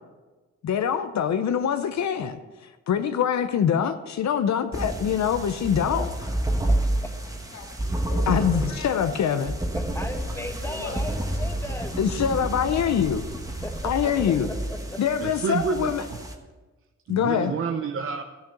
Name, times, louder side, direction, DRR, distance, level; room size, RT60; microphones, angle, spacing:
voice 1, 0.6-2.4 2.9-6.1 8.3-9.5 12.0-13.3 13.8-14.5 15.0-16.0 17.1-17.5, left 8 dB, 70° left, 0.7 m, -24 dB
sound 1, 4.7-16.3, right 1 dB, 10° right, 1.2 m, -30 dB
Dog, 5.6-14.3, left 2 dB, 85° left, 1.9 m, -44 dB
voice 2, 6.0-6.4 6.7-6.8 9.7-12.0 13.6-14.1 14.9-15.0, left 1 dB, 10° left, 1.1 m, -36 dB
voice 3, 15.2-15.9 17.1-18.2, right 6 dB, 50° right, 0.7 m, -28 dB
13.5 x 6.6 x 6.7 m
wide cardioid pair, 135°, 29 cm